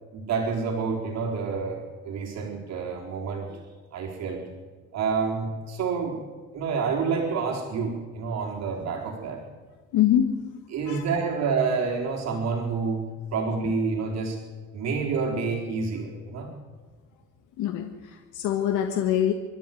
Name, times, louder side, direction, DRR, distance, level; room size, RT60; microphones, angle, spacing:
voice 1, 0.1-1.8 2.0-3.6 3.9-4.4 4.9-6.2 6.5-9.4 10.7-14.4 14.7-16.5, right 5 dB, 60° right, 0 dB, 4.1 m, -28 dB
voice 2, 9.9-10.4 10.9-11.0 17.6-19.3, left 11 dB, 90° left, 4 dB, 1.7 m, -24 dB
25.5 x 13.5 x 9.3 m, 1.4 s
cardioid pair, 140°, 30 cm